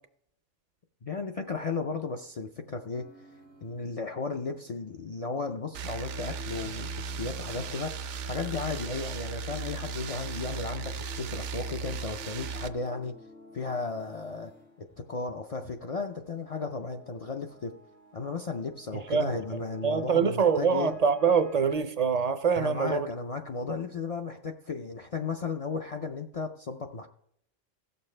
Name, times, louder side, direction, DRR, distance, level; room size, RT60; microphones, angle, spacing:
voice 1, 1.0-3.0 3.6-13.1 13.5-14.5 14.8-17.7 18.1-20.9 22.5-27.1, left 4 dB, 65° left, 0.3 m, -35 dB
sound 1, 2.9-21.8, left 1 dB, 90° left, 4.3 m, -54 dB
sound 2, 5.7-12.7, right 5 dB, 75° right, 0.9 m, -36 dB
voice 2, 19.8-23.1, right 6 dB, 55° right, 0.4 m, -24 dB
16.5 x 6.8 x 3.2 m
omnidirectional pair, 1.2 m